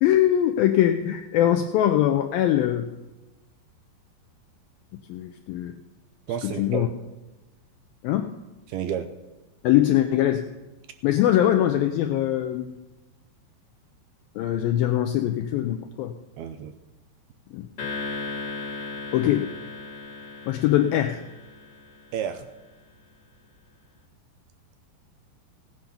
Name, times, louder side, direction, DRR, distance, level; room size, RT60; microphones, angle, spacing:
voice 1, 0.0-2.9 5.1-5.7 6.4-6.9 8.0-8.3 9.6-10.4 11.0-12.7 14.4-16.1 17.5-17.7 19.1-19.5 20.5-21.2, left 12 dB, 90° left, 7 dB, 2.1 m, -22 dB
voice 2, 6.3-6.9 8.7-9.1 16.4-16.7 22.1-22.5, right 8 dB, 80° right, 9 dB, 2.3 m, -30 dB
sound 1, 17.8-22.3, left 3 dB, 45° left, 1.5 m, -36 dB
16.5 x 9.5 x 5.8 m, 1.1 s
omnidirectional pair, 4.9 m